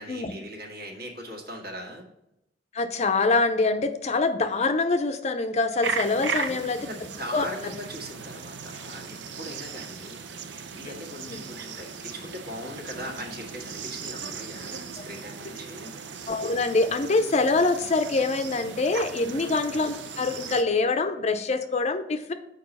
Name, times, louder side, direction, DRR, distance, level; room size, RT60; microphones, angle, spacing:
voice 1, 0.0-2.1 6.4-15.9 19.3-19.6, equal, 60° right, 0 dB, 1.8 m, -40 dB
voice 2, 2.7-6.9 7.3-7.5 11.3-11.4 15.0-15.1 16.3-22.3, left 3 dB, 40° left, 8 dB, 0.5 m, -25 dB
sound 1, 5.8-20.6, right 5 dB, 75° right, 0.7 m, -37 dB
6.8 x 4.8 x 5.4 m, 0.85 s
head